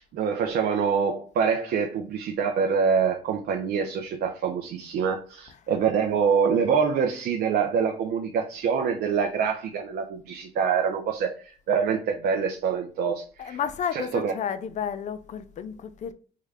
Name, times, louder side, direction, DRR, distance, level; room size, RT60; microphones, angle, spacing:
voice 1, 0.0-13.6 13.9-14.4, right 6 dB, 70° right, 0.5 m, -25 dB
voice 2, 13.4-16.1, left 8 dB, 45° left, 0.4 m, -31 dB
3.6 x 2.1 x 3.3 m
cardioid pair, 95°, 17 cm